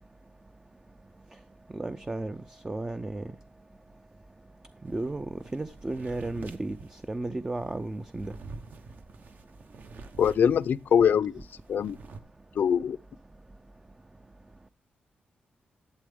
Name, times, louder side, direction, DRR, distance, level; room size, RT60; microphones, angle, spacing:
voice 1, 1.7-2.4 2.6-3.3 4.8-5.3 5.5-8.3, right 2 dB, 15° right, 0.4 m, -33 dB
sound 1, 4.8-11.1 11.4-12.2, right 3 dB, 60° right, 0.9 m, -47 dB
voice 2, 10.2-11.4 11.7-12.0 12.6-13.0, left 8 dB, 70° left, 0.4 m, -23 dB
11.5 x 7.7 x 3.5 m
wide cardioid pair, 120°, 3 cm